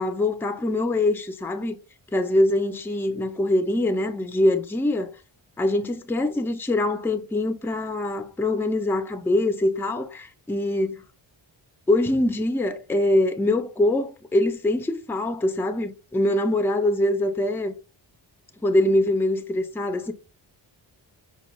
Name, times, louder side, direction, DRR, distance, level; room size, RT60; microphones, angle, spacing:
voice 1, 0.0-1.8 2.1-5.1 5.6-11.0 11.9-17.7 18.6-20.1, left 1 dB, 5° left, 0.3 m, -23 dB
5.0 x 2.3 x 2.9 m
wide cardioid pair, 90°, 46 cm